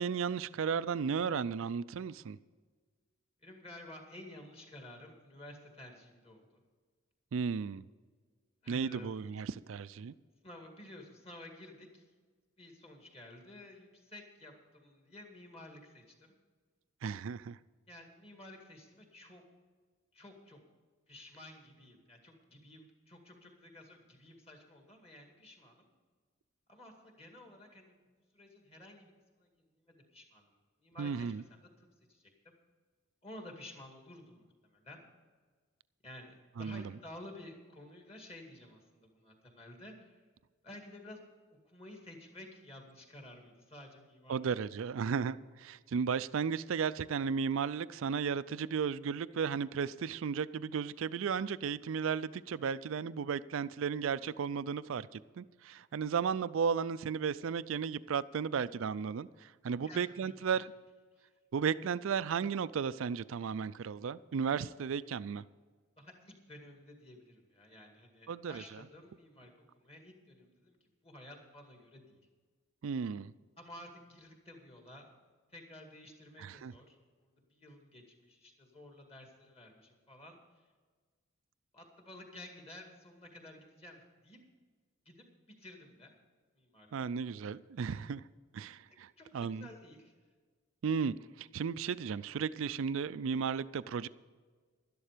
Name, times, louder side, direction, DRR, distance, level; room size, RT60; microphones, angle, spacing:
voice 1, 0.0-2.4 7.3-7.8 8.7-10.1 17.0-17.6 31.0-31.4 36.6-36.9 44.3-60.7 61.5-65.4 68.3-68.6 72.8-73.3 76.4-76.7 86.9-88.2 88.5-89.7 90.8-94.1, right 6 dB, 65° right, 0.4 m, -34 dB
voice 2, 3.4-6.6 8.6-9.2 10.4-12.1 12.6-16.4 17.9-19.4 20.1-20.6 21.1-25.9 26.7-27.9 28.3-30.5 30.8-32.3 33.2-35.0 36.0-40.2 40.6-41.2 41.5-44.4 44.8-44.9 59.8-60.6 61.1-61.3 66.0-72.2 73.6-75.1 75.5-80.7 81.7-84.4 85.1-86.2 86.5-87.1 88.9-90.1, left 1 dB, 25° left, 2.1 m, -53 dB
12.0 x 11.5 x 5.1 m
head